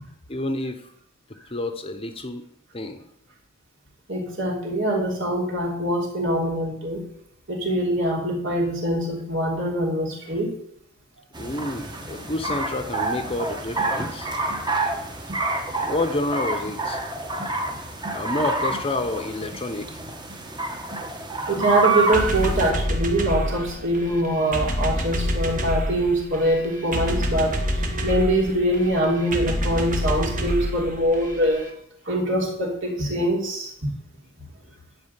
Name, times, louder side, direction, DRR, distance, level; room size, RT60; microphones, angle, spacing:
voice 1, 0.3-0.9 1.5-2.4 2.7-3.0 11.4-14.3 15.7-17.0 18.1-19.9, left 2 dB, 25° left, 8 dB, 0.9 m, -29 dB
voice 2, 4.1-7.0 7.5-10.5 21.5-27.6 28.0-31.6 32.1-33.9, right 1 dB, 60° right, -1 dB, 3.2 m, -23 dB
sound 1, 11.3-22.7, right 2 dB, 20° right, 1.3 m, -28 dB
sound 2, 22.1-31.7, equal, 40° right, 1.4 m, -27 dB
11.0 x 5.0 x 8.2 m, 0.69 s
head